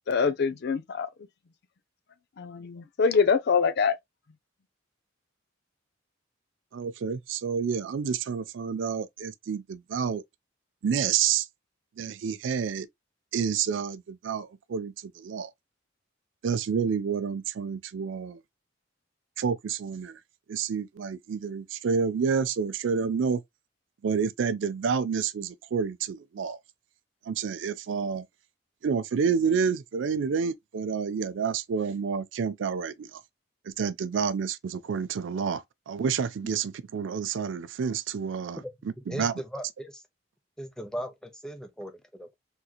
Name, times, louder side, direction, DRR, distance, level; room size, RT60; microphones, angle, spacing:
voice 1, 0.1-1.1 2.4-4.0, left 5 dB, 60° left, 0.5 m, -24 dB
voice 2, 6.7-10.2 10.8-11.5 12.0-12.9 13.3-15.5 16.4-18.4 19.4-20.2 20.5-23.4 24.0-26.6 27.3-28.2 28.8-33.2 33.8-38.6 39.1-39.3, right 6 dB, 70° right, 0.4 m, -29 dB
voice 3, 39.1-40.0 40.6-42.3, equal, 5° left, 0.7 m, -38 dB
3.6 x 2.9 x 2.3 m
head